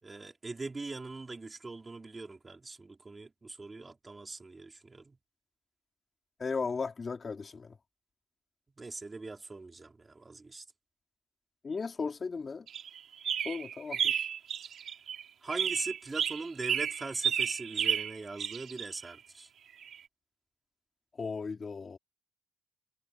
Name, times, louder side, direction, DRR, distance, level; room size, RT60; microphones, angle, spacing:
voice 1, 0.0-5.2 8.8-10.6 15.4-19.5, right 3 dB, 20° right, 4.8 m, -41 dB
voice 2, 6.4-7.7 11.6-12.6 13.4-14.1 21.2-22.0, left 4 dB, 30° left, 2.9 m, -36 dB
sound 1, 12.7-15.2 15.5-19.1 19.8-20.0, right 8 dB, 60° right, 2.9 m, -32 dB
cardioid pair, 140°, 0 cm